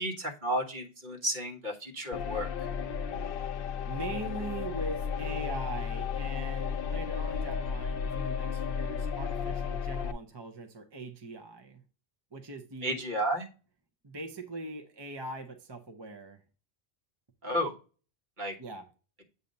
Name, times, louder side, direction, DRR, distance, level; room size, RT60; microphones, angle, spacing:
voice 1, 0.0-2.5 12.8-13.5 17.4-17.8 18.4-18.5, equal, 50° right, 1 dB, 1.6 m, -32 dB
sound 1, 2.1-10.1, left 7 dB, 65° left, 0.8 m, -33 dB
voice 2, 3.8-11.8 12.3-13.0 14.0-16.4 18.6-18.9, right 2 dB, 30° right, 5 dB, 0.7 m, -41 dB
8.1 x 2.8 x 5.1 m, 0.35 s
omnidirectional pair, 1.0 m